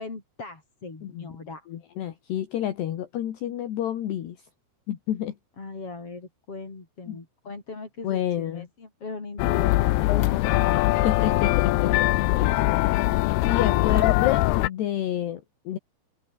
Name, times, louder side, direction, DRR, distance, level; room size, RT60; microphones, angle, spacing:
voice 1, 0.0-1.7 5.6-11.3 13.6-14.1, left 3 dB, 30° left, 5.6 m, -39 dB
voice 2, 1.0-1.3 1.7-4.5 4.9-5.4 7.1-7.2 8.0-8.7 11.0-11.9 12.4-12.5 13.4-15.8, left 11 dB, 65° left, 3.8 m, -29 dB
sound 1, 9.4-14.7, left 18 dB, 85° left, 2.3 m, -22 dB
omnidirectional pair, 5.7 m